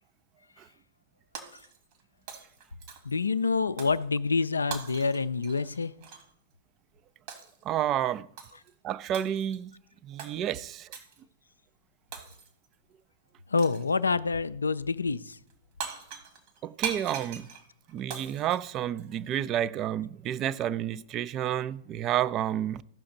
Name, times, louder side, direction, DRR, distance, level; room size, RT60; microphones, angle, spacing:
Shatter, 1.3-2.0 2.3-3.2 3.8-4.0 4.7-6.3 7.3-7.6 8.4-8.7 9.1-9.6 10.2-10.4 10.9-11.2 12.1-12.7 13.6-13.9 15.5-15.6 15.8-19.4, right 7 dB, 50° right, 1.6 m, -41 dB
voice 1, 3.1-5.9 13.5-15.4, left 4 dB, 80° left, 0.4 m, -27 dB
voice 2, 7.6-8.3 8.8-9.7 10.0-10.9 16.6-17.5 17.9-22.8, right 11 dB, 35° right, 0.4 m, -30 dB
15.0 x 5.9 x 3.8 m
figure-of-eight pair, 100°, 0 cm